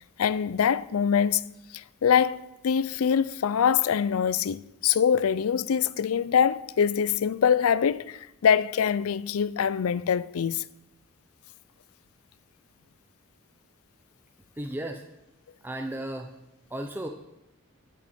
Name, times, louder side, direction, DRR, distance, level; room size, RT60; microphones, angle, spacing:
voice 1, 0.2-1.4 1.7-10.6, left 7 dB, 85° left, 0.4 m, -24 dB
voice 2, 14.6-15.0 15.6-16.3 16.7-17.1, right 1 dB, 10° right, 0.6 m, -34 dB
14.0 x 7.3 x 4.3 m
head